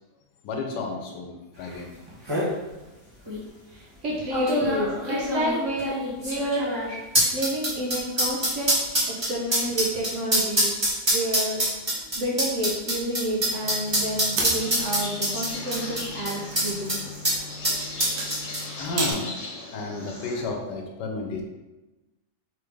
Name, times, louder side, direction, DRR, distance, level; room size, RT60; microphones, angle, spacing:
voice 1, 0.4-1.9 7.2-7.3 11.0-11.1 12.0-12.1 17.6-17.9 18.8-19.4 19.7-21.4, left 3 dB, 85° left, 3 dB, 1.3 m, -32 dB
sound 1, 1.7-1.8 2.1-2.5 3.3-3.4 4.3-17.0 17.2-17.4 17.6-18.9 19.1-19.2, equal, 20° right, 0.9 m, -24 dB
voice 2, 3.7-6.7 7.3-8.7 9.1-11.6 12.2-17.0, right 1 dB, 55° right, -3 dB, 0.9 m, -29 dB
sound 2, 13.6-19.1, right 2 dB, 90° right, 1.3 m, -35 dB
sound 3, 14.5-20.4, left 2 dB, 70° left, 1.5 m, -38 dB
3.8 x 3.3 x 3.4 m, 1.1 s
omnidirectional pair, 1.8 m